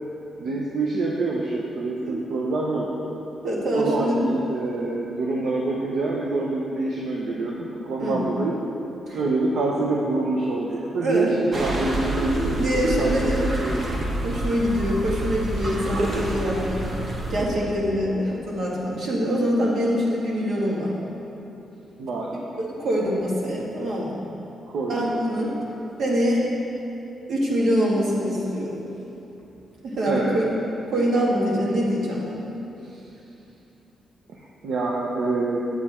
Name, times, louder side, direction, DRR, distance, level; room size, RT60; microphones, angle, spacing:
voice 1, 0.4-2.9 3.7-8.6 9.1-13.7 18.0-18.2 22.0-22.3 24.7-25.7 30.1-30.4 34.3-35.6, right 3 dB, 75° right, -3 dB, 0.8 m, -26 dB
voice 2, 3.4-4.2 8.0-8.2 9.1-9.2 11.0-11.4 12.2-13.9 14.2-16.8 17.3-20.9 22.6-24.2 24.9-25.6 26.0-26.5 27.3-28.8 29.8-30.5 30.9-32.5, equal, 60° right, -4 dB, 2.0 m, -24 dB
sound 1, 11.5-17.4, right 1 dB, 45° right, 1.1 m, -28 dB
8.5 x 8.3 x 4.4 m, 2.9 s
cardioid pair, 130°, 0 cm